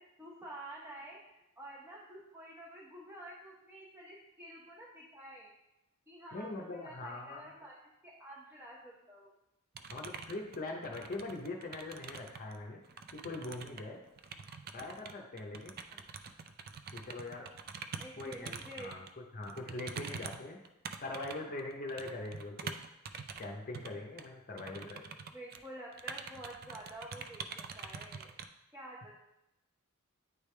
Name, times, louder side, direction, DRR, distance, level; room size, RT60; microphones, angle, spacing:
voice 1, 0.2-5.5 6.1-7.8 8.0-9.3 15.9-16.1 18.0-18.9 19.6-20.1 24.5-28.4 28.7-29.2, right 1 dB, 10° right, -5 dB, 0.8 m, -50 dB
voice 2, 6.3-7.5 9.9-12.8 13.1-14.0 14.7-15.8 16.9-17.5 18.2-19.0 19.3-20.6 21.0-22.7 23.4-25.0, left 2 dB, 40° left, 1 dB, 0.6 m, -42 dB
sound 1, 9.7-12.6 12.8-19.1 19.4-23.5 23.7-23.9 24.2-24.3 24.6-25.7 25.9-28.5, right 6 dB, 45° right, 0.4 m, -45 dB
9.2 x 3.3 x 3.2 m, 0.89 s
head